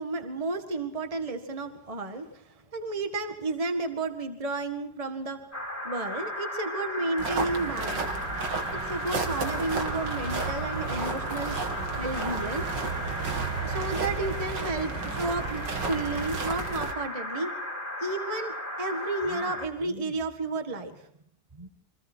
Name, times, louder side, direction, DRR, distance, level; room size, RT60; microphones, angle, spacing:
voice 1, 0.0-5.4 5.8-8.1 8.8-11.6 12.0-12.7 13.6-17.5 18.0-20.9 21.5-21.7, right 2 dB, 20° right, 6 dB, 1.8 m, -32 dB
sound 1, 5.5-19.7, left 1 dB, 10° left, 4.2 m, -36 dB
sound 2, 7.2-16.9, right 4 dB, 90° right, 2.9 m, -32 dB
29.0 x 24.5 x 4.6 m, 0.66 s
omnidirectional pair, 1.9 m